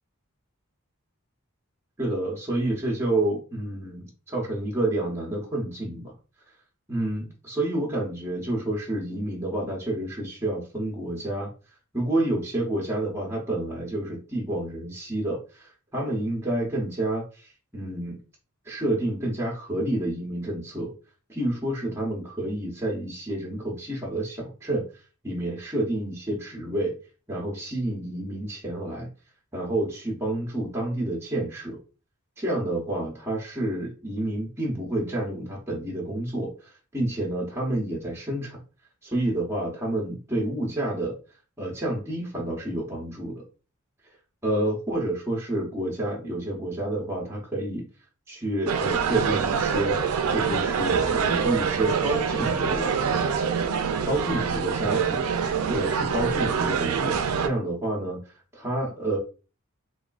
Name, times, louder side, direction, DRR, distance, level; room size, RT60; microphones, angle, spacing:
voice 1, 2.0-6.1 6.9-11.5 11.9-18.2 18.6-20.9 21.3-24.8 25.2-26.9 27.3-29.1 29.5-31.8 32.4-38.6 39.0-41.2 41.6-43.4 44.4-47.8 48.3-50.0 50.3-53.5 54.0-55.3 55.7-59.2, right 1 dB, 10° right, -2 dB, 0.7 m, -29 dB
sound 1, 48.7-57.5, right 6 dB, 75° right, 0.4 m, -25 dB
3.5 x 2.3 x 2.3 m, 0.34 s
head